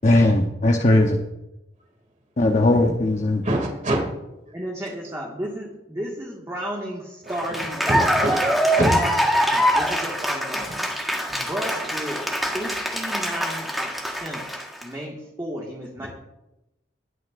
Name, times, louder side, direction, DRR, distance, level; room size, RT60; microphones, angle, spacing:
voice 1, 0.0-1.2 2.4-3.4, left 2 dB, 40° left, 2 dB, 0.9 m, -18 dB
voice 2, 3.4-4.0 7.6-8.4 8.7-8.9 10.7-10.8 16.0-16.1, right 1 dB, 45° right, 1 dB, 2.5 m, -24 dB
voice 3, 4.5-8.3 8.9-9.1 9.4-10.8 11.4-12.2 12.5-16.1, equal, 15° right, -3 dB, 1.8 m, -33 dB
Cheering / Applause, 7.3-14.8, equal, ahead, 1.5 m, -24 dB
20.0 x 9.5 x 2.6 m, 0.93 s
head